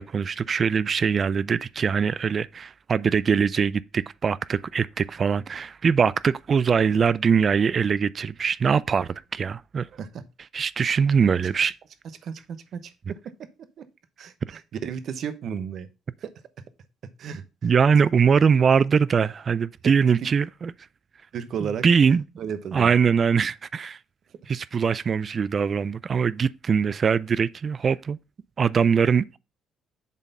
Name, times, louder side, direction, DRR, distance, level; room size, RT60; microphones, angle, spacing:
voice 1, 0.0-9.9 10.5-11.7 17.6-20.7 21.6-22.2 22.7-24.0 24.5-28.2 28.6-29.4, right 6 dB, 45° right, 0.4 m, -22 dB
voice 2, 9.9-10.2 11.0-11.1 12.2-13.2 13.8-13.9 14.2-15.9 16.2-16.3 17.2-17.7 19.8-19.9 21.3-21.8 22.4-22.9, right 7 dB, 65° right, 0.9 m, -34 dB
7.2 x 4.1 x 5.4 m
supercardioid pair, 65°, 0 cm